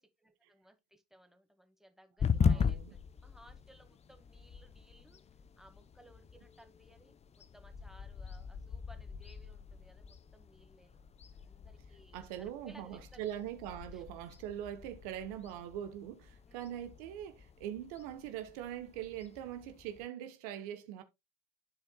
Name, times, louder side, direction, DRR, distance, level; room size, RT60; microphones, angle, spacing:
voice 1, 0.0-11.0 11.3-13.3 13.9-14.0 16.4-16.6 21.0-21.1, right 1 dB, ahead, 1.7 m, -61 dB
sound 1, 2.2-20.1, left 6 dB, 35° left, 0.7 m, -39 dB
voice 2, 2.3-2.9 12.1-21.0, right 11 dB, 85° right, 0.9 m, -42 dB
13.5 x 4.5 x 2.3 m
supercardioid pair, 70°, 19 cm